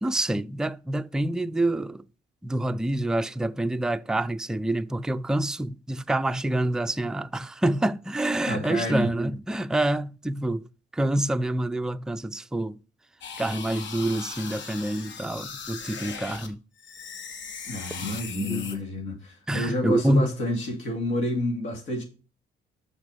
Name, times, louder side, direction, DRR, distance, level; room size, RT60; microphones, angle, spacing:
voice 1, 0.0-2.0 2.4-10.6 11.0-12.8 13.4-16.6 18.3-18.8 19.5-20.3, right 1 dB, 5° right, 0.3 m, -27 dB
voice 2, 8.5-9.1 17.7-22.0, left 1 dB, 85° left, 2.6 m, -29 dB
sound 1, 13.2-16.5 16.8-18.8, left 6 dB, 70° left, 1.3 m, -39 dB
6.4 x 5.9 x 5.1 m
cardioid pair, 90°, 20 cm